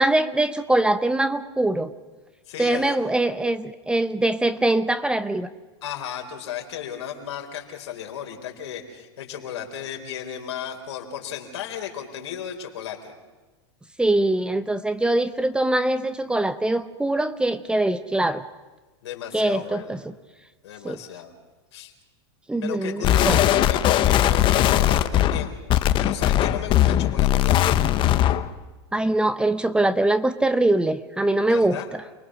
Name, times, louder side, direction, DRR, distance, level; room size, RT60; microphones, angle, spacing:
voice 1, 0.0-1.9 2.6-5.5 14.0-18.4 19.3-20.0 20.8-21.0 22.5-23.4 28.9-31.8, right 2 dB, 5° right, 12 dB, 0.8 m, -22 dB
voice 2, 2.5-3.0 5.8-13.1 19.0-20.0 20.6-21.3 21.7-21.9 22.6-25.5 26.0-27.6 31.5-31.9, left 9 dB, 80° left, 3 dB, 4.2 m, -34 dB
sound 1, 23.0-28.5, left 12 dB, 35° left, 1.0 m, -19 dB
29.0 x 20.0 x 6.3 m, 1.2 s
hypercardioid pair, 120°, 14 cm